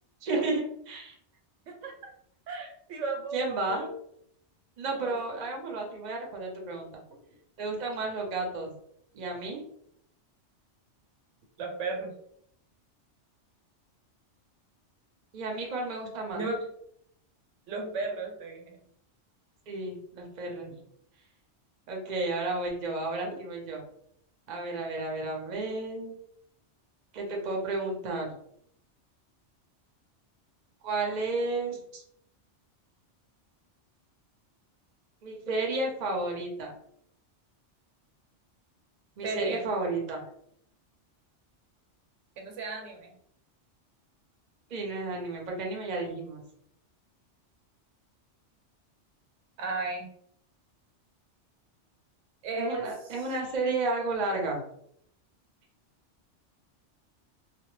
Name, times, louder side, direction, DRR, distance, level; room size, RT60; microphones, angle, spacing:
voice 1, 0.2-1.2 3.3-3.9 4.8-6.9 7.6-8.7 9.1-9.6 15.3-16.4 19.7-20.8 21.9-23.8 24.5-26.2 27.1-28.3 30.8-32.0 35.2-36.7 39.2-40.3 44.7-46.4 52.6-54.6, right 2 dB, 45° right, 0 dB, 0.6 m, -32 dB
voice 2, 2.5-3.9 4.9-5.1 7.1-7.2 11.6-12.1 16.3-16.7 17.7-18.8 39.2-39.6 42.4-43.1 49.6-50.1 52.4-52.9, right 3 dB, 85° right, 2 dB, 1.0 m, -34 dB
2.2 x 2.1 x 3.0 m, 0.69 s
omnidirectional pair, 1.2 m